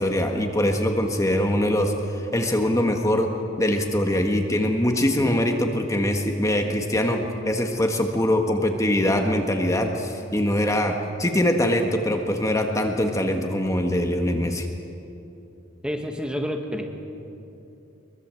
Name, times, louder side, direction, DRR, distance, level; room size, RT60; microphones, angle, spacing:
voice 1, 0.0-3.3 3.6-14.7, left 1 dB, 15° left, 3 dB, 1.6 m, -23 dB
voice 2, 15.8-16.9, equal, 5° right, 3 dB, 1.7 m, -29 dB
23.5 x 22.5 x 7.7 m, 2.8 s
head